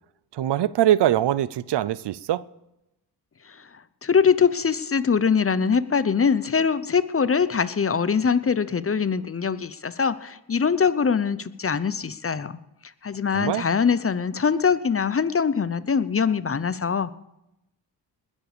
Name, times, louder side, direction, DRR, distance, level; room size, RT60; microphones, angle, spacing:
voice 1, 0.3-2.4 13.3-13.6, right 12 dB, 70° right, 19 dB, 0.6 m, -22 dB
voice 2, 4.0-12.6 13.0-17.2, left 6 dB, 30° left, 16 dB, 0.7 m, -23 dB
20.5 x 7.3 x 6.8 m, 0.89 s
cardioid pair, 60°, 43 cm